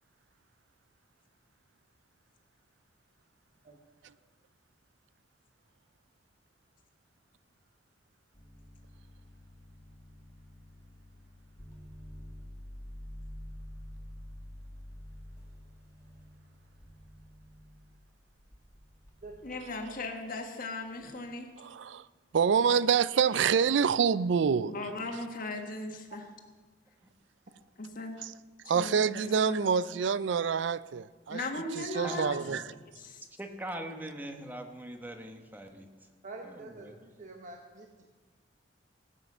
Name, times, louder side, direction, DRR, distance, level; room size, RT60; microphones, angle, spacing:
sound 1, 8.3-20.1 21.0-21.3, left 1 dB, 20° left, 1.9 m, -49 dB
voice 1, 19.4-21.5 24.7-26.2 27.8-28.2 28.7-29.7 31.3-32.4 33.0-33.2, left 2 dB, 50° left, 4 dB, 1.5 m, -38 dB
voice 2, 21.6-22.0 22.3-24.7 28.7-31.4 31.8-32.6, right 6 dB, 80° right, 18 dB, 0.4 m, -26 dB
voice 3, 32.0-32.6 33.4-35.9 36.4-36.9, right 1 dB, 10° right, 5 dB, 1.0 m, -41 dB
voice 4, 36.2-37.9, right 3 dB, 45° right, 3 dB, 1.0 m, -46 dB
16.0 x 8.3 x 5.4 m, 1.3 s
head